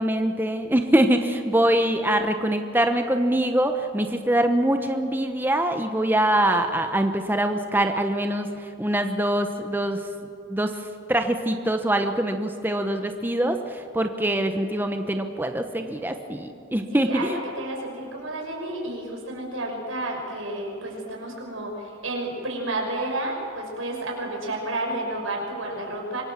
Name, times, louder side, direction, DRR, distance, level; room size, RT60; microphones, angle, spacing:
voice 1, 0.0-8.5 8.8-10.0 10.5-10.7 11.1-17.4, right 1 dB, 10° right, 6 dB, 1.0 m, -23 dB
voice 2, 16.9-26.2, right 2 dB, 85° right, 0 dB, 6.3 m, -31 dB
26.0 x 24.0 x 7.5 m, 2.6 s
head